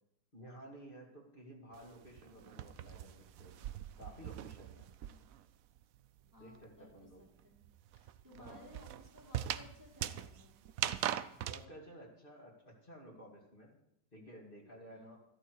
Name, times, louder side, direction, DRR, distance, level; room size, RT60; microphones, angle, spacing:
voice 1, 0.3-3.6 4.0-4.9 6.4-7.2 8.4-8.7 11.4-13.7 14.1-15.2, equal, 30° left, -2 dB, 2.5 m, -54 dB
sound 1, 1.7-5.5 5.8-11.6, right 11 dB, 65° right, 0.9 m, -41 dB
voice 2, 6.2-7.6 8.0-10.5 14.9-15.2, left 1 dB, 10° right, -1 dB, 2.3 m, -59 dB
14.0 x 12.0 x 4.8 m, 0.78 s
omnidirectional pair, 1.9 m